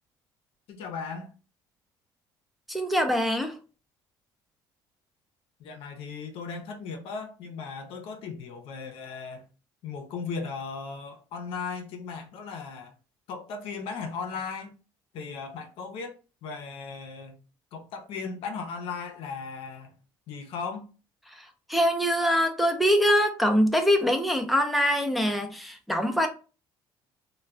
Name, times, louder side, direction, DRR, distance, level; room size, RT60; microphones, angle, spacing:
voice 1, 0.7-1.3 5.6-9.5 9.8-12.9 13.3-14.7 15.1-16.2 16.4-17.4 17.7-20.0 20.3-20.9, left 5 dB, 70° left, 0.6 m, -37 dB
voice 2, 2.7-3.6 21.3-26.3, equal, ahead, 0.5 m, -24 dB
2.2 x 2.2 x 3.5 m
supercardioid pair, 85°, 10 cm